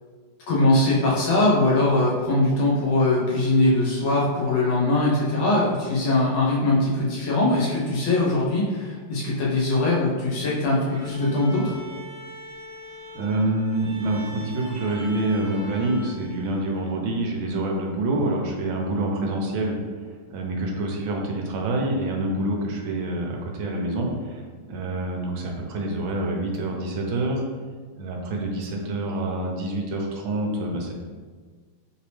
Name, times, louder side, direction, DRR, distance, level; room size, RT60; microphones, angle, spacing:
voice 1, 0.5-11.7, left 2 dB, 65° left, -5 dB, 1.3 m, -21 dB
Bowed string instrument, 10.9-17.2, equal, 55° right, 1.5 m, -42 dB
voice 2, 13.1-19.8 20.3-27.4 28.0-30.9, right 1 dB, 80° right, 1 dB, 1.3 m, -27 dB
3.3 x 2.9 x 3.0 m, 1.5 s
omnidirectional pair, 2.3 m